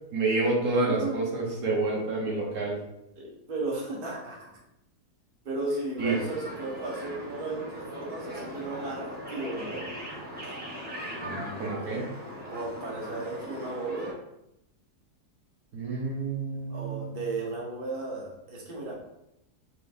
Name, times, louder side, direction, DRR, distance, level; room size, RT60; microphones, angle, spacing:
voice 1, 0.1-2.8 6.0-6.1 11.2-12.1 15.7-17.2, right 3 dB, 60° right, -3 dB, 1.6 m, -28 dB
voice 2, 0.9-1.2 1.8-2.3 3.1-4.5 5.4-9.9 12.5-14.1 16.7-18.9, right 2 dB, 35° right, -4 dB, 1.2 m, -35 dB
sound 1, 6.0-14.1, equal, 5° right, 1.0 m, -39 dB
4.5 x 3.5 x 2.7 m, 0.84 s
omnidirectional pair, 1.7 m